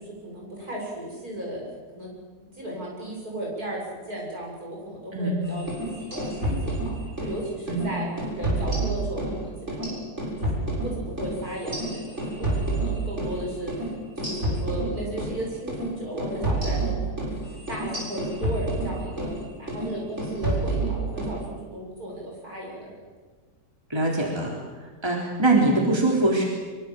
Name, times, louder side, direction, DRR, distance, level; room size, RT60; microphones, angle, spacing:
voice 1, 0.0-1.6 1.9-2.1 2.5-6.9 7.2-10.0 10.4-13.9 14.2-17.2 17.5-19.3 19.6-23.0, right 1 dB, 60° right, -2 dB, 8.5 m, -35 dB
sound 1, 5.6-7.4 7.7-7.9 8.2-9.4 9.7-13.4 13.7-13.8 14.2-15.3 15.7-15.9 16.2-19.4 19.7-19.9 20.2-21.3, right 2 dB, 40° right, 7.9 m, -28 dB
voice 2, 23.9-24.5 25.0-26.4, right 2 dB, 15° right, -1 dB, 3.8 m, -22 dB
24.5 x 24.0 x 7.9 m, 1.4 s
omnidirectional pair, 1.8 m